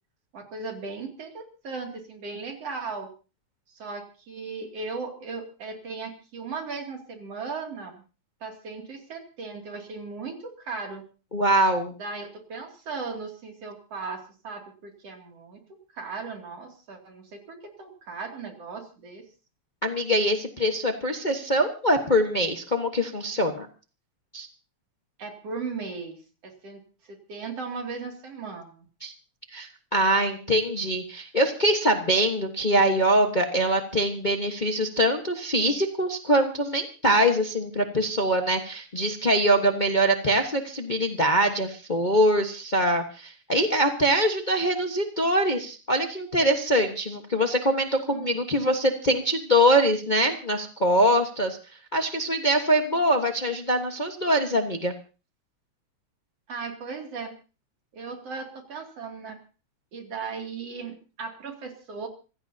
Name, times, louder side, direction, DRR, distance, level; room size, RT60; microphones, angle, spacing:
voice 1, 0.3-3.1 3.7-8.0 8.4-11.0 12.0-19.3 25.2-26.2 26.4-28.9 48.1-48.9 56.5-57.3 57.9-59.4 59.9-62.1, right 4 dB, 55° right, 2 dB, 3.7 m, -37 dB
voice 2, 11.3-11.9 19.8-23.7 24.3-24.5 29.0-29.1 29.5-51.6 51.9-54.9, right 1 dB, 60° left, 4 dB, 0.4 m, -23 dB
26.5 x 16.5 x 2.8 m, 0.35 s
omnidirectional pair, 3.4 m